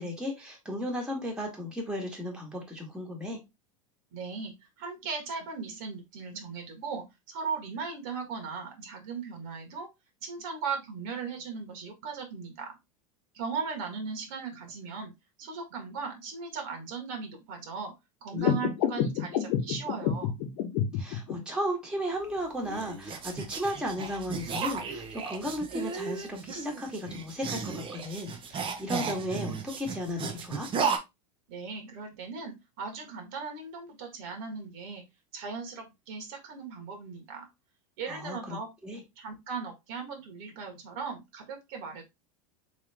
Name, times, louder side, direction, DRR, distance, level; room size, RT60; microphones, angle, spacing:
voice 1, 0.0-3.4 18.3-18.6 20.9-30.7 38.1-38.6 38.8-39.0, equal, 5° right, 1 dB, 1.4 m, -35 dB
voice 2, 4.1-9.9 10.2-12.7 13.3-15.1 15.4-17.9 18.2-20.3 31.5-35.0 35.3-37.5 38.0-38.7 39.2-42.0, right 5 dB, 60° right, 3 dB, 1.5 m, -38 dB
sound 1, 18.4-21.3, left 8 dB, 60° left, 1.0 m, -29 dB
sound 2, 22.2-31.0, right 5 dB, 30° right, 0.8 m, -35 dB
3.5 x 3.2 x 3.4 m, 0.22 s
hypercardioid pair, 105°, 18 cm